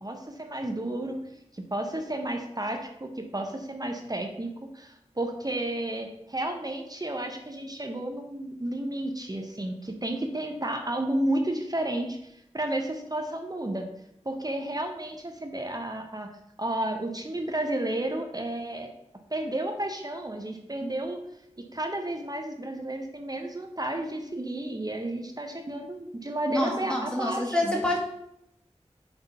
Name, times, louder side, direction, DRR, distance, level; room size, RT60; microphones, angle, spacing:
voice 1, 0.0-1.2 1.5-13.9 14.2-16.3 16.6-18.9 19.3-21.2 21.7-27.8, right 1 dB, 35° right, 4 dB, 0.8 m, -32 dB
voice 2, 26.5-28.0, left 1 dB, 5° left, -1 dB, 1.8 m, -27 dB
6.0 x 3.6 x 5.6 m, 0.79 s
wide cardioid pair, 45°, 12 cm